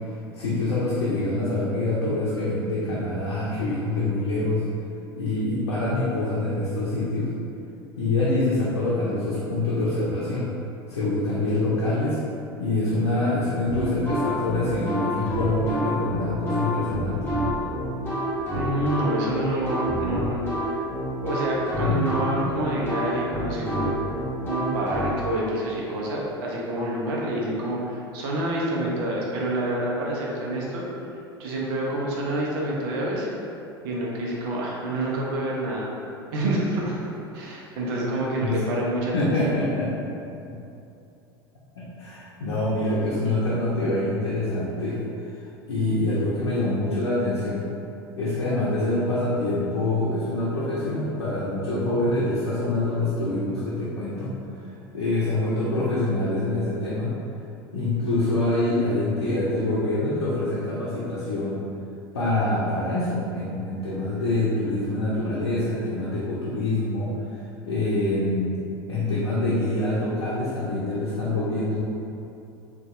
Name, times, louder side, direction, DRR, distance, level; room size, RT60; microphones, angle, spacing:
voice 1, 0.3-4.6 5.1-7.3 8.0-10.5 10.9-12.2 12.6-17.3 21.8-22.0 22.3-22.4 38.4-38.5 39.1-39.9 41.8-45.0 45.7-47.6 48.2-54.3 54.9-57.1 57.7-61.6 62.1-67.1 67.7-68.6 68.9-71.8, left 2 dB, 80° left, -8 dB, 0.6 m, -25 dB
sound 1, 13.7-25.1, equal, 15° left, 1.2 m, -28 dB
voice 2, 18.5-20.4 21.2-24.0 24.5-30.8 31.4-33.3 33.8-35.9 36.3-39.5, right 1 dB, 65° right, -4 dB, 0.7 m, -27 dB
3.9 x 2.4 x 2.4 m, 2.7 s
hypercardioid pair, 75°, 13 cm